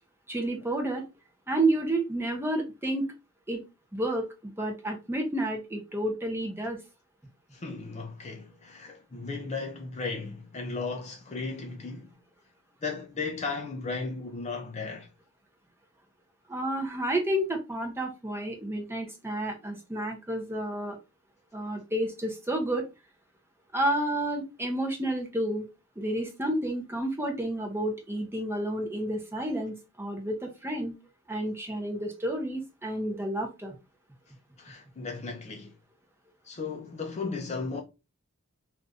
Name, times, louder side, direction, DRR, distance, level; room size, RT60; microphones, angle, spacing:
voice 1, 0.3-1.0 1.5-3.1 3.5-3.6 3.9-6.8 16.5-21.0 21.5-22.8 23.7-25.7 26.0-30.9 31.3-33.7, right 1 dB, 10° right, 0.7 m, -30 dB
voice 2, 7.5-12.1 12.8-15.1 34.6-35.8 36.4-37.8, left 4 dB, 30° left, 0.5 m, -35 dB
2.5 x 2.5 x 3.3 m
head